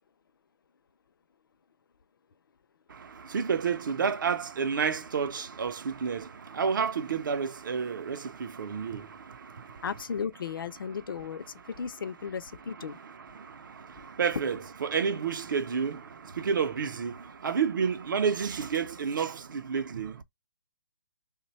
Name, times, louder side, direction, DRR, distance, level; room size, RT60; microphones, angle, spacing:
voice 1, 2.9-9.8 12.8-20.2, right 6 dB, 70° right, 0.5 m, -30 dB
voice 2, 9.8-13.0, left 6 dB, 85° left, 0.5 m, -35 dB
3.2 x 2.2 x 4.1 m
hypercardioid pair, 165°, 11 cm